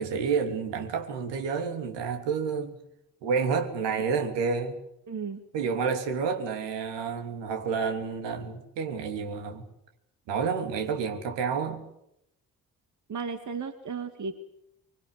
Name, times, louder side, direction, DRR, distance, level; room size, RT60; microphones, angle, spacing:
voice 1, 0.0-2.8 3.2-4.8 5.5-9.6 10.3-11.8, right 5 dB, 60° right, 3.2 m, -29 dB
voice 2, 5.1-5.4 13.1-14.4, right 5 dB, 35° right, 2.3 m, -34 dB
24.5 x 24.5 x 8.4 m
figure-of-eight pair, 40°, 47 cm